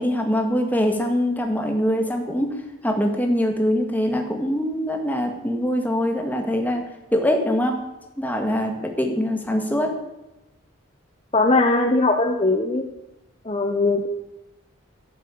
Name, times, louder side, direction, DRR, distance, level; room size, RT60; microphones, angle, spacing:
voice 1, 0.0-2.5 2.8-6.8 7.1-7.8 8.2-9.9, equal, 10° left, 3 dB, 1.7 m, -23 dB
voice 2, 11.3-12.8 13.4-14.1, left 2 dB, 30° left, 3 dB, 0.9 m, -20 dB
12.5 x 8.4 x 8.5 m, 0.97 s
head